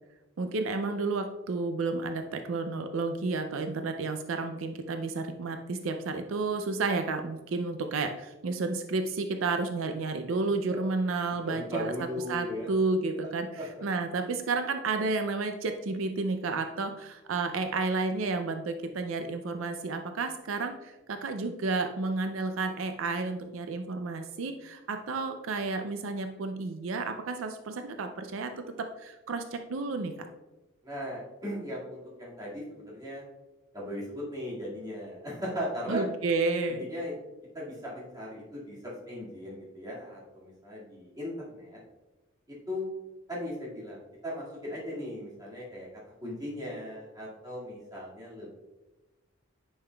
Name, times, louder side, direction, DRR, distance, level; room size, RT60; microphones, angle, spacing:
voice 1, 0.4-11.9 12.3-28.5 29.0-30.1 35.9-36.8, right 3 dB, 75° right, 6 dB, 0.4 m, -31 dB
voice 2, 11.4-12.7 13.6-13.8 30.8-33.2 33.7-36.1 36.9-37.1 37.5-41.8 42.5-42.9 43.3-45.9 46.2-48.5, equal, 20° right, -6 dB, 2.0 m, -38 dB
9.7 x 5.5 x 2.3 m, 1.1 s
head